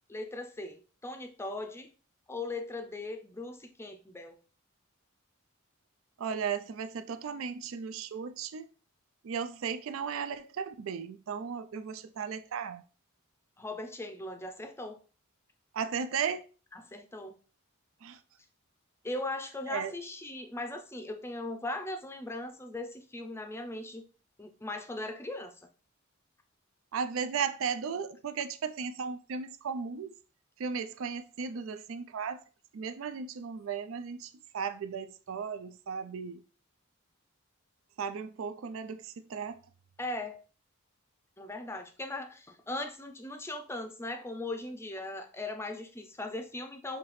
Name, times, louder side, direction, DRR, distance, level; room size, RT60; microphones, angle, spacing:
voice 1, 0.1-1.9 2.3-4.4 13.6-15.0 16.7-17.4 19.0-24.1 24.4-25.5 40.0-40.4 41.4-47.0, left 2 dB, 10° left, 0.5 m, -39 dB
voice 2, 6.2-8.7 9.2-12.8 15.7-16.5 18.0-18.2 19.7-19.9 26.9-30.1 30.6-32.4 32.7-36.4 38.0-39.6, right 6 dB, 70° right, 0.4 m, -35 dB
5.8 x 2.8 x 3.1 m
head